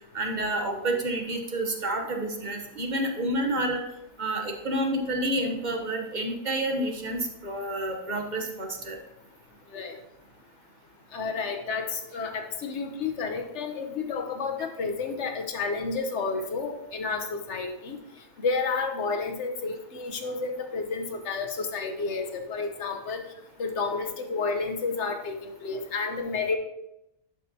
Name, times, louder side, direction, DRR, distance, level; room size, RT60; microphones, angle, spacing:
voice 1, 0.1-3.8 4.2-9.0, right 1 dB, 35° right, 3 dB, 1.0 m, -29 dB
voice 2, 11.1-18.0 18.4-23.2 23.6-26.6, left 4 dB, 60° left, 4 dB, 1.1 m, -31 dB
11.0 x 5.4 x 2.8 m, 0.85 s
omnidirectional pair, 1.5 m